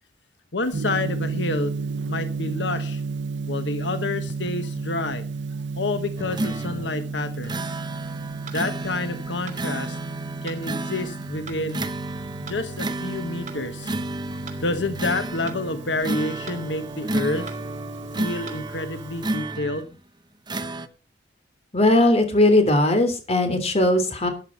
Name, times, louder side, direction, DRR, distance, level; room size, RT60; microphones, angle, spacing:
voice 1, 0.5-1.7 2.1-3.0 3.5-5.2 5.8-7.8 8.5-10.0 10.4-11.9 12.4-13.9 14.3-17.5 18.1-19.9, left 2 dB, 85° left, 9 dB, 1.3 m, -29 dB
Gong, 0.7-19.3, right 4 dB, 90° right, 0.8 m, -33 dB
sound 1, 6.2-20.0 20.5-20.9, right 1 dB, 25° right, 1.1 m, -32 dB
sound 2, 8.5-8.6 9.5-9.6 10.5-10.6 11.5-11.6 12.5-12.6 13.5-13.6 14.5-14.6 15.5-15.6 16.5-16.6 17.5-17.6 18.5-18.6, right 6 dB, 45° right, 3.0 m, -41 dB
voice 2, 21.7-24.3, left 1 dB, 35° left, 7 dB, 3.4 m, -19 dB
13.5 x 9.7 x 5.4 m, 0.34 s
head